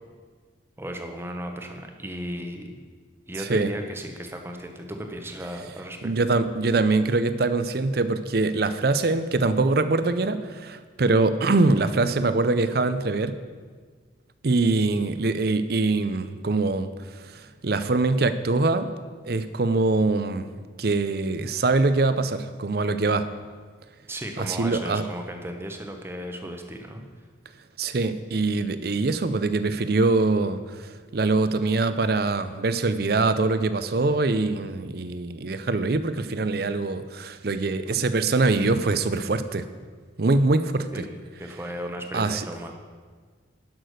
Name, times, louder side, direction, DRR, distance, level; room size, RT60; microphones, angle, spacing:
voice 1, 0.8-2.8 3.3-6.1 24.1-27.0 40.9-41.1 41.4-42.7, equal, 10° right, 4 dB, 0.9 m, -35 dB
voice 2, 6.0-13.3 14.4-18.9 19.2-20.5 20.8-23.2 24.4-25.0 27.8-39.7 40.2-41.1 42.1-42.5, right 3 dB, 55° right, 11 dB, 0.6 m, -23 dB
11.5 x 6.1 x 6.4 m, 1.5 s
head